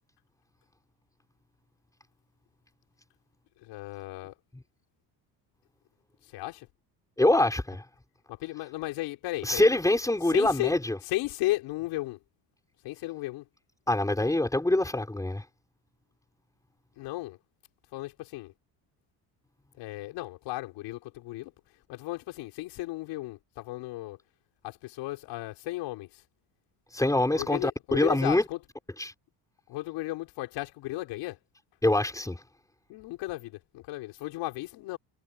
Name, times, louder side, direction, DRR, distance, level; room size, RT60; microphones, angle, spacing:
voice 1, 3.6-4.3 6.3-6.7 8.3-9.6 10.3-10.7 11.0-12.2 12.8-13.4 17.0-17.4 17.9-18.5 19.8-21.5 21.9-24.2 24.6-26.2 27.4-28.6 29.7-31.4 32.9-35.0, left 18 dB, 80° left, 4.9 m, -35 dB
voice 2, 7.2-7.8 9.4-11.0 13.9-15.4 26.9-28.4 29.0-29.1 31.8-32.4, left 1 dB, 10° left, 6.5 m, -25 dB
cardioid pair, 120°, 42 cm